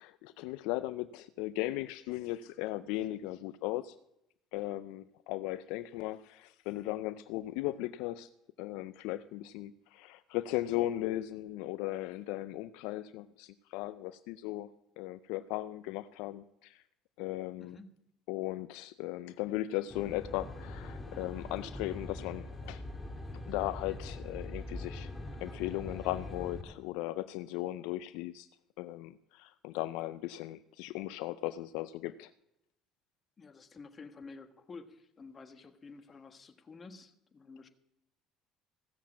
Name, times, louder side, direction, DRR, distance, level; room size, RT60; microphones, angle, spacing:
voice 1, 0.0-4.0 4.5-8.3 8.6-14.7 15.0-16.8 17.2-17.8 18.3-22.8 23.5-25.1 25.4-28.5 28.8-32.3, left 16 dB, 75° left, 13 dB, 0.4 m, -37 dB
voice 2, 17.6-17.9 33.4-37.7, left 4 dB, 35° left, 7 dB, 1.4 m, -51 dB
Aircraft, 19.9-26.6, left 2 dB, 10° left, 2.4 m, -43 dB
15.5 x 7.3 x 7.2 m, 0.83 s
supercardioid pair, 75°, 0 cm